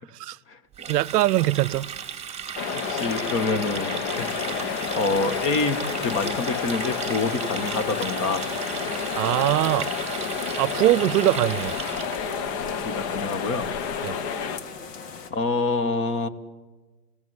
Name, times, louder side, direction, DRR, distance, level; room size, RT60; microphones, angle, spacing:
Water tap faucet, 0.7-12.3, right 7 dB, 15° right, 2.7 m, -35 dB
voice 1, 0.9-1.9 9.1-9.9 10.6-11.8 14.0-14.2, right 15 dB, 75° right, 0.7 m, -22 dB
sound 1, 2.6-14.6, left 6 dB, 45° left, 1.7 m, -30 dB
voice 2, 2.7-4.4 4.9-8.5 12.8-13.7 15.3-16.3, left 3 dB, 25° left, 1.5 m, -27 dB
sound 2, 4.1-15.3, left 5 dB, 80° left, 3.3 m, -40 dB
29.5 x 17.5 x 8.1 m
hypercardioid pair, 135°, 47 cm